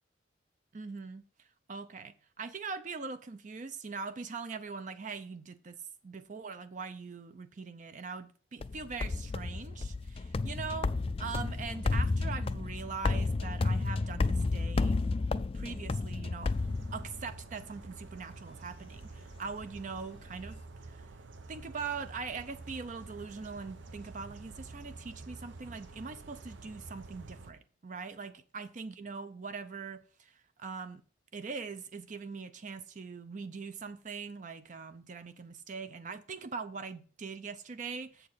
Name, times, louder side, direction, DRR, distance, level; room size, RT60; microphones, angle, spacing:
voice 1, 0.7-10.9 11.2-15.0 15.5-16.5 16.9-20.6 20.9-21.1 21.5-31.0 31.3-38.3, right 5 dB, 40° right, 0.5 m, -42 dB
sound 1, 8.6-17.4, left 3 dB, 30° left, 0.3 m, -32 dB
sound 2, 16.4-27.5, right 3 dB, 90° right, 0.8 m, -49 dB
7.4 x 6.7 x 4.0 m
head